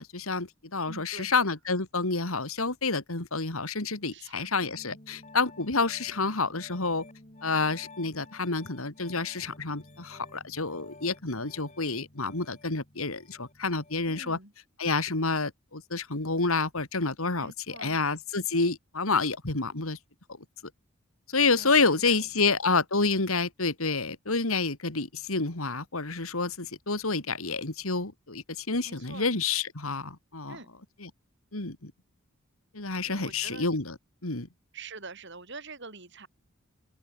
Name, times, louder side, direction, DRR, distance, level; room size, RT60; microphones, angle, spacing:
voice 1, 0.0-7.0 7.4-14.4 14.8-20.0 21.3-30.6 31.0-31.1 31.5-31.9 32.7-34.5, left 3 dB, 85° left, 3.1 m, -29 dB
voice 2, 0.9-1.3 4.1-4.5 14.1-14.5 17.4-18.0 21.6-22.2 28.9-29.3 30.5-30.7 33.1-33.7 34.7-36.3, right 3 dB, 55° right, 7.3 m, -45 dB
Piano, 4.6-14.3, left 2 dB, 35° left, 4.5 m, -52 dB
open air
head